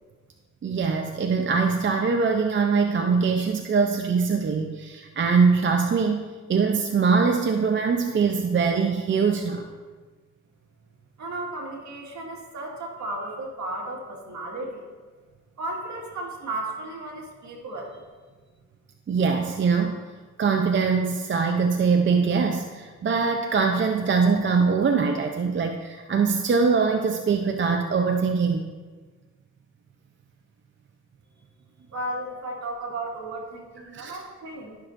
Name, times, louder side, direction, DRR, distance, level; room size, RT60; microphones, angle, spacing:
voice 1, 0.6-6.2 6.5-9.6 19.1-20.0 20.4-28.6 33.9-34.1, right 5 dB, 35° right, 4 dB, 0.6 m, -22 dB
voice 2, 11.2-14.8 15.6-18.1 31.9-34.8, right 2 dB, 60° right, -1 dB, 1.8 m, -34 dB
12.5 x 6.1 x 2.5 m, 1.4 s
cardioid pair, 85°, 32 cm